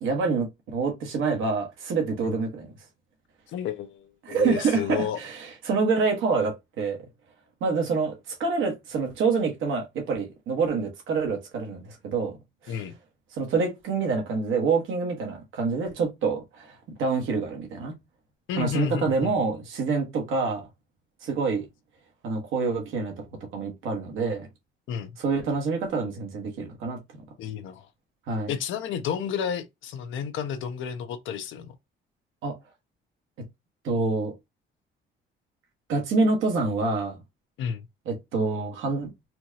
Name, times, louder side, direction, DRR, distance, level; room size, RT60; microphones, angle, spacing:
voice 1, 0.0-2.7 4.2-7.0 7.6-12.3 12.6-12.8 13.4-17.9 18.5-20.6 21.2-21.6 22.2-23.1 23.5-24.5 25.2-27.0 28.3-28.5 32.4-32.5 33.8-34.3 35.9-37.2 38.1-39.1, right 4 dB, 85° right, 1.3 m, -26 dB
voice 2, 3.5-5.2 12.7-12.9 18.5-19.4 24.9-25.1 27.4-27.9 28.5-31.8 37.6-37.9, left 8 dB, 80° left, 0.6 m, -31 dB
4.4 x 2.4 x 2.7 m
cardioid pair, 90°, 20 cm